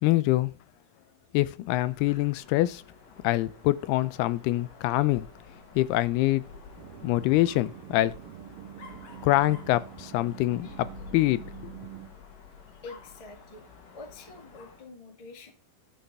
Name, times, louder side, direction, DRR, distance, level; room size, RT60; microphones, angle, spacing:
voice 1, 0.0-0.5 1.3-2.8 3.2-5.3 5.8-6.4 7.0-8.1 9.2-10.7 11.1-11.4, left 17 dB, 85° left, 2.6 m, -24 dB
Dog, 1.6-14.9, left 5 dB, 60° left, 3.3 m, -49 dB
sound 1, 6.8-12.1, right 13 dB, 75° right, 2.9 m, -45 dB
voice 2, 12.7-13.6 13.9-15.5, left 3 dB, 30° left, 0.6 m, -46 dB
11.5 x 6.5 x 5.4 m
omnidirectional pair, 4.5 m